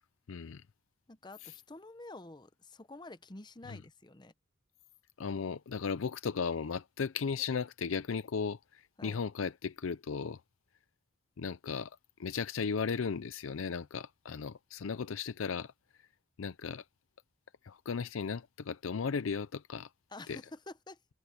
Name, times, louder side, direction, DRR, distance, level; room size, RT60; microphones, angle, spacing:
voice 1, 0.3-0.6 3.7-3.8 5.2-10.4 11.4-11.9 12.2-15.7 16.4-16.8 17.6-19.9 20.3-20.4, left 5 dB, 90° left, 0.5 m, -36 dB
voice 2, 1.1-4.3 9.0-9.2 15.0-15.1 20.1-21.0, left 2 dB, 20° left, 0.8 m, -49 dB
head